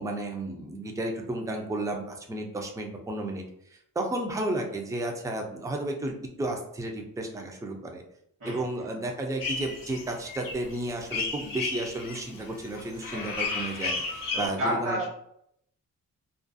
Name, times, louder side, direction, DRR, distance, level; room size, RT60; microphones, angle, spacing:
voice 1, 0.0-3.4 4.0-8.0 8.4-15.1, right 1 dB, 10° right, 2 dB, 0.4 m, -33 dB
sound 1, 9.4-14.5, left 4 dB, 70° left, 0.6 m, -33 dB
voice 2, 14.3-15.1, equal, 55° right, -7 dB, 1.1 m, -30 dB
2.4 x 2.3 x 2.6 m, 0.73 s
cardioid pair, 85°, 34 cm